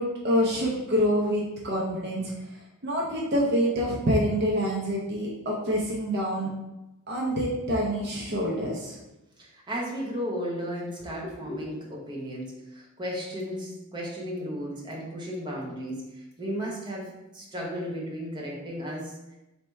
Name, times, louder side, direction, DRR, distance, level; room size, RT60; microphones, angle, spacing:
voice 1, 0.0-2.3 2.8-6.5 7.1-9.0 11.2-11.6, equal, 50° right, -3 dB, 0.7 m, -26 dB
voice 2, 9.4-19.3, equal, 20° right, -3 dB, 0.9 m, -35 dB
3.3 x 2.8 x 4.5 m, 0.97 s
head